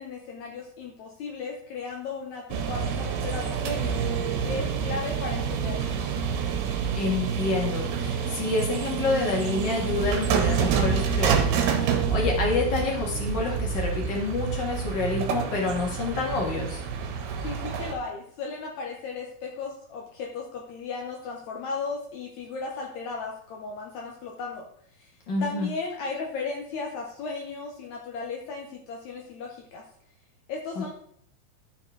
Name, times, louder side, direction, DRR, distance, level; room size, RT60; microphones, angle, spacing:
voice 1, 0.0-4.0 4.4-6.1 17.4-24.7 25.0-29.8 30.5-30.9, left 4 dB, 75° left, 0 dB, 1.7 m, -35 dB
sound 1, 2.5-17.9, right 6 dB, 80° right, 3.0 m, -28 dB
voice 2, 6.9-16.8 25.3-25.7 30.8-30.9, left 3 dB, 35° left, -2 dB, 2.2 m, -28 dB
13.5 x 4.7 x 3.8 m, 0.66 s
omnidirectional pair, 4.6 m